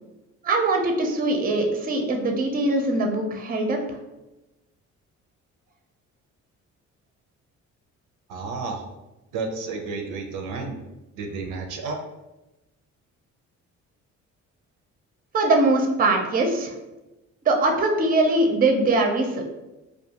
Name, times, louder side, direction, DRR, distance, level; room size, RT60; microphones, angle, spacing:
voice 1, 0.4-4.0 15.3-16.7 17.4-19.5, right 2 dB, 30° right, 3 dB, 0.5 m, -22 dB
voice 2, 8.3-8.8 9.3-10.8 11.2-12.0, right 4 dB, 90° right, 4 dB, 0.5 m, -31 dB
2.3 x 2.2 x 2.8 m, 1.0 s
cardioid pair, 90°, 30 cm